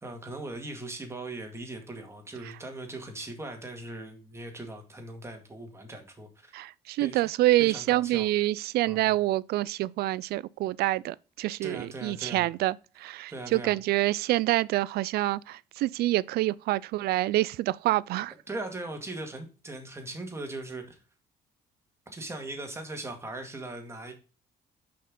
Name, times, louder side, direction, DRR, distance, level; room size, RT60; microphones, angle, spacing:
voice 1, 0.0-6.5 7.0-7.2 7.6-8.3 8.9-9.2 11.6-12.5 13.3-13.7 18.5-21.0 22.1-24.1, right 2 dB, 15° right, 2.0 m, -39 dB
voice 2, 6.5-18.3, right 16 dB, 70° right, 0.4 m, -27 dB
6.5 x 5.7 x 3.8 m
cardioid pair, 110°, 17 cm